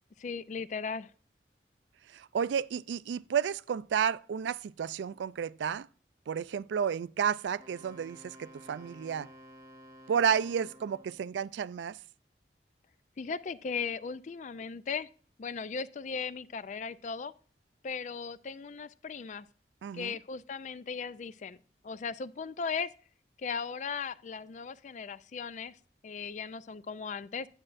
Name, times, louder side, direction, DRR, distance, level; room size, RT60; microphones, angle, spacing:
voice 1, 0.2-1.1 13.2-15.1 15.4-17.3 17.8-19.5 19.9-21.6 21.8-22.9 23.4-25.8 26.0-27.5, left 5 dB, 45° left, 0.4 m, -37 dB
voice 2, 2.1-5.9 6.3-9.3 10.1-12.0 19.8-20.2, right 7 dB, 90° right, 0.3 m, -31 dB
Wind instrument woodwind instrument, 7.6-11.3, equal, 20° right, 1.0 m, -53 dB
9.8 x 7.5 x 2.5 m
head